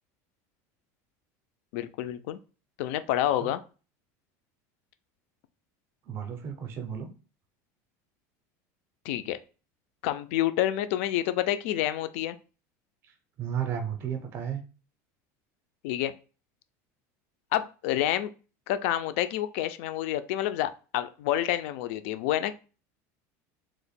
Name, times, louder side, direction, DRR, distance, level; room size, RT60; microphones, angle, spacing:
voice 1, 1.7-2.4 2.8-3.6 9.1-9.4 10.0-12.4 15.8-16.1 17.5-18.3 18.7-22.6, left 13 dB, 55° left, 12 dB, 0.4 m, -28 dB
voice 2, 6.1-7.1 13.0-14.6, right 8 dB, 30° right, 6 dB, 0.5 m, -34 dB
2.9 x 2.2 x 4.1 m, 0.35 s
cardioid pair, 180°, 8 cm